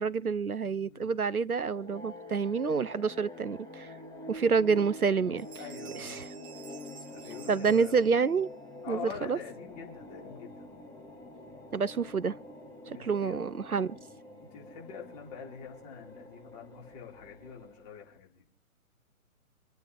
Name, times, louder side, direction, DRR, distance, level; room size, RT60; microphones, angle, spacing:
voice 1, 0.0-3.9 4.3-5.5 5.9-6.3 7.5-8.5 8.9-9.4 11.7-12.4 12.9-14.0, right 5 dB, 90° right, 0.8 m, -28 dB
voice 2, 0.6-1.1 5.6-6.1 7.1-8.0 8.8-10.7 12.8-13.5 14.4-18.4, left 7 dB, 30° left, 4.7 m, -45 dB
sound 1, 1.6-18.2, left 1 dB, 10° left, 2.0 m, -47 dB
sound 2, 5.0-5.1 5.4-8.5, right 7 dB, 10° right, 1.5 m, -52 dB
27.5 x 9.4 x 3.5 m
figure-of-eight pair, 130°, 42 cm